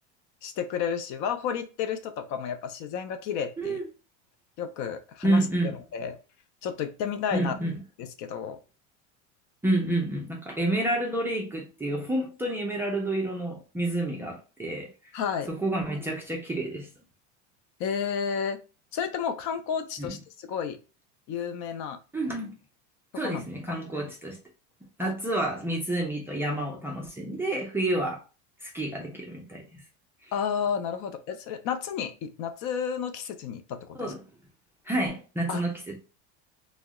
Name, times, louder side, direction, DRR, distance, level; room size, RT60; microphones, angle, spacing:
voice 1, 0.4-3.8 4.6-5.5 5.9-6.2 6.6-7.6 8.0-8.6 15.1-15.5 17.8-18.6 18.9-20.8 21.3-22.0 23.2-23.8 25.0-25.1 30.3-34.1 35.5-35.6, left 7 dB, 50° left, 0.5 m, -31 dB
voice 2, 5.2-5.8 7.3-7.7 9.6-14.9 15.5-16.9 20.0-20.2 22.1-22.6 23.2-24.4 25.0-28.2 28.6-29.8 34.0-34.2 34.9-36.0, right 1 dB, 5° right, 0.4 m, -29 dB
2.7 x 2.1 x 3.5 m
supercardioid pair, 140°, 35 cm